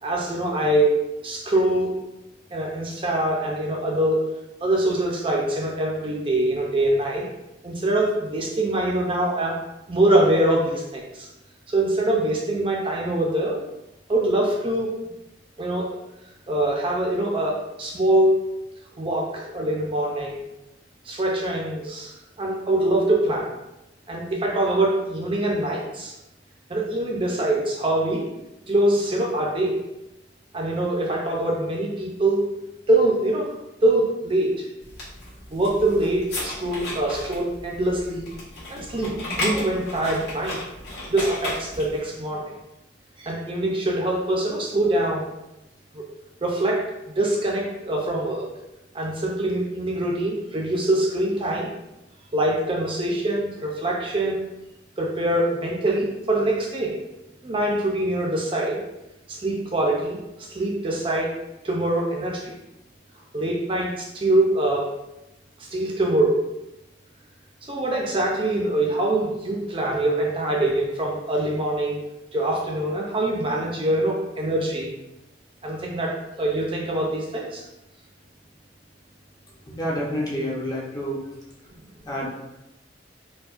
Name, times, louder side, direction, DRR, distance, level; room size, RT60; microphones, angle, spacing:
voice 1, 0.0-1.0 1.2-2.0 2.5-7.3 7.6-11.3 11.7-13.6 14.1-14.9 15.6-16.0 16.5-18.4 19.0-20.4 21.0-23.5 24.1-26.1 26.7-28.2 28.7-29.8 30.5-32.5 32.9-33.5 33.8-34.7 35.5-38.3 38.7-40.6 41.1-42.5 43.2-45.3 45.9-46.0 46.4-46.8 47.2-48.5 48.9-51.7 52.3-54.4 55.0-57.0 57.4-58.8 59.3-61.4 61.6-62.5 63.3-64.9 65.6-66.4 67.6-72.0 72.3-74.9 75.6-77.7 81.8-81.9, right 1 dB, 30° right, -2 dB, 0.5 m, -24 dB
sound 1, 34.8-42.0, left 1 dB, 65° left, 1.4 m, -33 dB
voice 2, 79.7-81.2 82.1-82.3, equal, 25° left, -4 dB, 0.7 m, -28 dB
4.6 x 2.2 x 2.5 m, 0.93 s
head